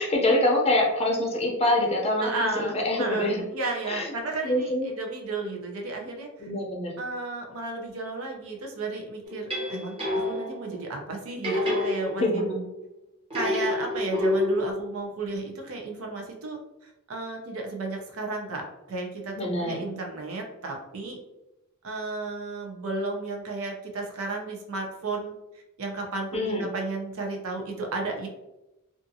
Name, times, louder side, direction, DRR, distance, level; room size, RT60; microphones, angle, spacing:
voice 1, 0.0-3.4 3.9-4.0 4.4-4.9 6.4-7.0 12.2-12.6 19.4-19.9 26.3-26.7, left 1 dB, 30° left, -1 dB, 0.5 m, -25 dB
voice 2, 2.2-6.5 7.0-12.5 13.3-21.2 21.8-28.3, right 2 dB, 75° right, 1 dB, 0.6 m, -33 dB
sound 1, 9.3-10.7 11.4-12.6 13.3-14.7, left 1 dB, 25° right, 0.8 m, -28 dB
2.5 x 2.4 x 2.6 m, 0.95 s
head